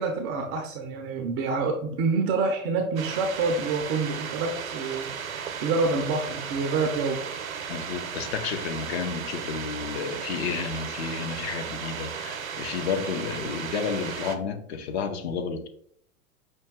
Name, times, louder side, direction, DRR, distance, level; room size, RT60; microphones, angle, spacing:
voice 1, 0.0-7.2, right 4 dB, 25° right, 0.4 m, -27 dB
sound 1, 3.0-14.4, right 7 dB, 80° right, 0.6 m, -35 dB
voice 2, 7.7-15.7, left 6 dB, 50° left, 0.7 m, -31 dB
5.4 x 2.2 x 3.5 m
figure-of-eight pair, 100°, 41 cm